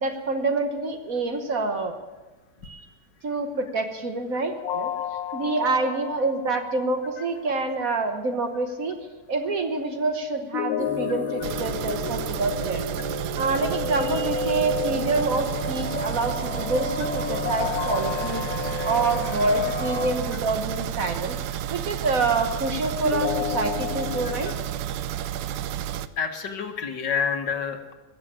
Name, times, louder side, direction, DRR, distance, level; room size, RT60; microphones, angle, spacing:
voice 1, 0.0-1.9 2.6-2.9 3.2-4.9 5.3-9.0 9.3-12.8 13.4-18.5 18.8-21.4 21.7-24.5, right 3 dB, 50° right, 6 dB, 1.3 m, -27 dB
sound 1, 4.6-7.6 10.5-13.6 17.3-20.5 23.0-24.5, left 12 dB, 85° left, 1.4 m, -33 dB
sound 2, 10.8-20.1, left 2 dB, 5° left, 0.9 m, -32 dB
sound 3, 11.4-26.1, right 11 dB, 75° right, 1.2 m, -31 dB
voice 2, 26.2-27.9, left 6 dB, 65° left, 5 dB, 1.8 m, -28 dB
15.0 x 7.6 x 8.8 m, 1.2 s
omnidirectional pair, 2.0 m